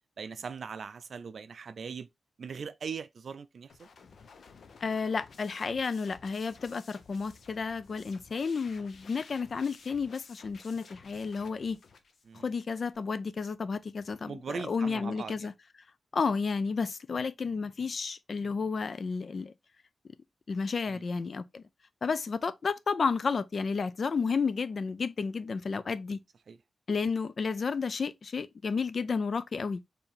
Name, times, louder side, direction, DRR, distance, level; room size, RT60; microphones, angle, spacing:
voice 1, 0.2-2.1 2.4-3.9 12.2-12.5 14.3-15.5 20.9-21.0 26.5-26.6, right 6 dB, 60° right, 0.4 m, -40 dB
sound 1, 3.7-13.0, left 5 dB, 70° left, 0.8 m, -54 dB
voice 2, 4.8-11.8 12.4-15.5 16.1-19.5 20.5-21.6 22.0-26.2 26.9-29.8, left 5 dB, 45° left, 0.4 m, -32 dB
4.6 x 3.4 x 3.3 m
wide cardioid pair, 170°, 0 cm